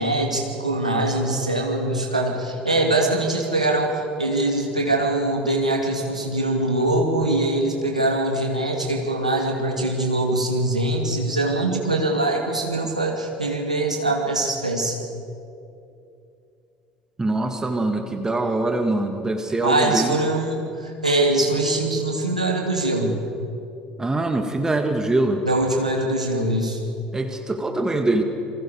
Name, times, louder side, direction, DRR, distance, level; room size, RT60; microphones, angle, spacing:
voice 1, 0.0-15.0 19.6-23.2 25.4-26.8, right 2 dB, 90° right, 1 dB, 2.5 m, -23 dB
voice 2, 17.2-20.2 24.0-25.4 27.1-28.2, right 2 dB, 15° right, 5 dB, 2.1 m, -23 dB
28.5 x 23.0 x 5.0 m, 2.6 s
figure-of-eight pair, 60°, 4 cm